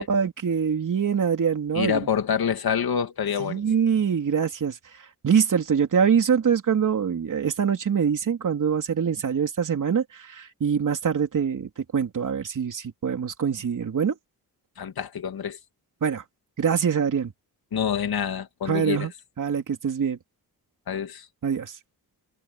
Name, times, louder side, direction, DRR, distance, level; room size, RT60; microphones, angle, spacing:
voice 1, 0.0-2.1 3.4-4.8 5.2-14.2 16.0-16.2 16.6-17.3 18.7-19.1 19.4-20.2 21.4-21.7, right 7 dB, 55° right, 3.4 m, -24 dB
voice 2, 1.7-3.6 14.8-15.6 17.7-19.1 20.9-21.3, left 7 dB, 75° left, 2.6 m, -27 dB
wide cardioid pair, 170°, 37 cm